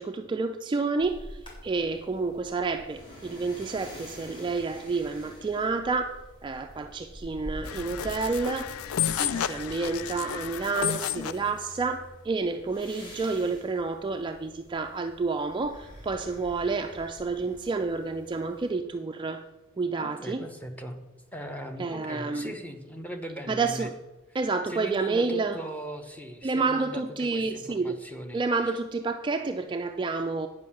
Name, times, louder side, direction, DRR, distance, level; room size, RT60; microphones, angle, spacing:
voice 1, 0.0-8.8 9.1-19.4 19.8-20.5 21.8-22.5 23.5-23.9 24.3-25.6 26.4-28.0 28.3-30.5, right 4 dB, 20° right, 0.3 m, -29 dB
sound 1, 1.0-18.7, equal, 25° left, 3.1 m, -47 dB
sound 2, 7.6-11.5, left 11 dB, 75° left, 0.4 m, -31 dB
voice 2, 20.0-21.0 21.3-23.9 24.7-28.7, equal, 5° left, 0.9 m, -39 dB
9.3 x 5.4 x 7.1 m
head